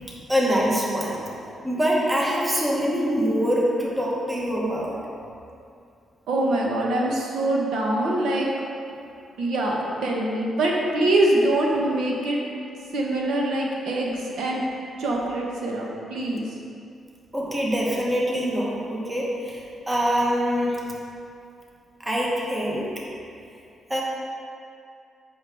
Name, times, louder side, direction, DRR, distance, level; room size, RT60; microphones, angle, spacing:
voice 1, 0.3-1.2 1.6-5.0 17.3-20.8 22.0-22.9 23.9-24.0, equal, 10° right, -4 dB, 1.0 m, -24 dB
voice 2, 6.3-8.5 9.4-12.4 12.9-14.6 15.0-16.4, right 1 dB, 80° right, -2 dB, 1.0 m, -24 dB
7.6 x 5.6 x 3.4 m, 2.5 s
cardioid pair, 150°, 0 cm